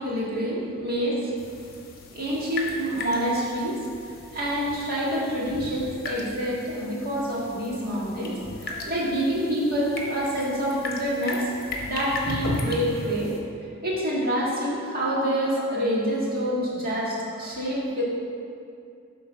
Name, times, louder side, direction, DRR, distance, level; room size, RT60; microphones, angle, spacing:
voice 1, 0.0-1.3 2.1-3.8 4.1-11.5 11.8-13.3 13.8-18.0, equal, 45° right, -6 dB, 1.7 m, -27 dB
sound 1, 1.4-13.4, left 2 dB, 45° left, 1.0 m, -36 dB
8.1 x 3.8 x 5.7 m, 2.4 s
head